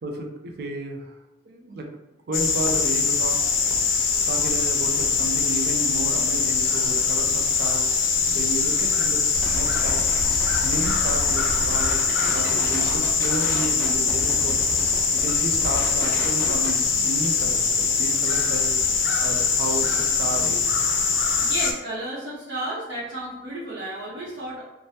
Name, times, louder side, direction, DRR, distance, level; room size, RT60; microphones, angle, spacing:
voice 1, 0.0-1.1 1.5-1.9 2.3-3.4 3.7-4.0 4.3-7.8 8.3-10.1 10.6-14.6 15.1-18.7 19.2-20.8, right 2 dB, 55° right, 3 dB, 0.4 m, -32 dB
sound 1, 2.3-21.7, left 5 dB, 85° left, 0.5 m, -22 dB
sound 2, 9.3-16.8, equal, 10° left, 0.5 m, -32 dB
voice 2, 21.4-24.6, right 1 dB, 75° right, -9 dB, 0.8 m, -32 dB
2.6 x 2.1 x 3.3 m, 1.0 s
head